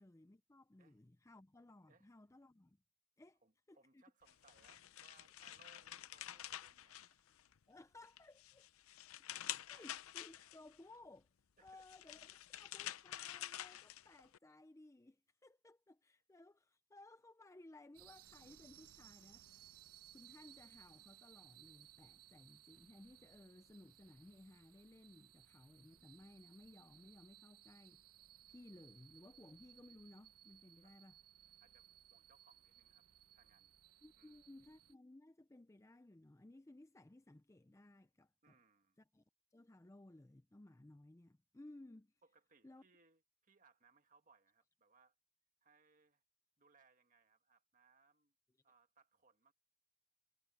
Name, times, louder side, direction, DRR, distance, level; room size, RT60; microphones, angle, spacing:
voice 1, 0.0-2.8 3.2-3.4 3.7-4.0 7.7-8.7 9.5-11.3 11.6-19.7 20.1-28.0 28.5-31.2 34.0-38.6 39.1-39.2 39.5-42.1 42.6-42.8, left 2 dB, 15° left, 0.4 m, -60 dB
voice 2, 3.4-7.4 9.7-9.8 10.4-10.5 11.6-11.9 12.5-12.6 30.8-31.0 31.6-33.0 33.3-33.7 34.2-34.5 38.4-39.0 42.2-45.1 45.6-46.2 46.6-48.3 48.6-49.5, right 4 dB, 35° right, 1.7 m, -71 dB
sound 1, 4.3-7.6 8.0-10.8 11.7-14.4, left 13 dB, 70° left, 0.6 m, -49 dB
sound 2, 17.9-34.9, right 12 dB, 90° right, 1.0 m, -63 dB
head